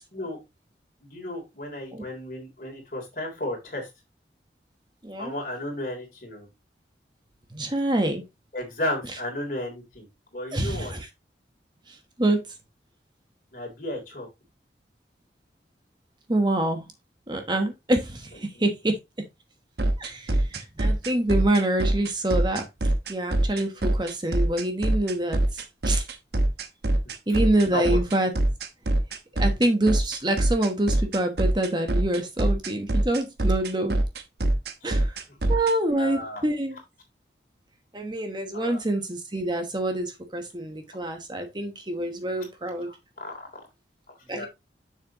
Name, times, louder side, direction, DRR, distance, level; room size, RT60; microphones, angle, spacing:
voice 1, 1.0-3.9 5.2-6.5 8.5-10.9 13.5-14.3 18.5-18.6 27.7-28.0 34.8-34.9 35.9-36.5 38.5-38.8 42.3-42.4 42.8-43.5 44.2-44.5, left 1 dB, 50° left, 3.3 m, -34 dB
voice 2, 7.5-8.2 10.5-11.1 11.9-12.4 16.3-16.8 17.3-19.0 20.0-22.6 23.1-26.1 27.3-28.3 29.4-33.9 34.8-35.2 35.5-36.8 37.9-42.9 44.3-44.5, right 1 dB, 25° right, 1.1 m, -26 dB
sound 1, 19.8-35.7, right 1 dB, 65° right, 1.0 m, -23 dB
7.3 x 6.6 x 2.9 m
head